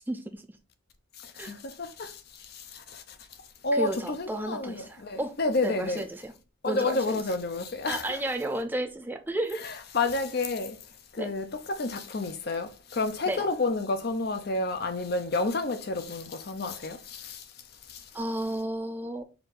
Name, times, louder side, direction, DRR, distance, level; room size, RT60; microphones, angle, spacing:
voice 1, 0.1-0.4 1.4-1.5 3.7-5.4 5.6-6.3 6.7-7.2 7.9-9.6 11.2-11.3 13.3-13.5 18.1-19.2, right 1 dB, 10° right, 0.4 m, -32 dB
voice 2, 1.2-3.2 3.6-6.1 6.6-8.2 9.6-10.8 11.1-17.5 17.9-18.1, left 3 dB, 50° left, 0.6 m, -30 dB
4.6 x 2.7 x 3.8 m
head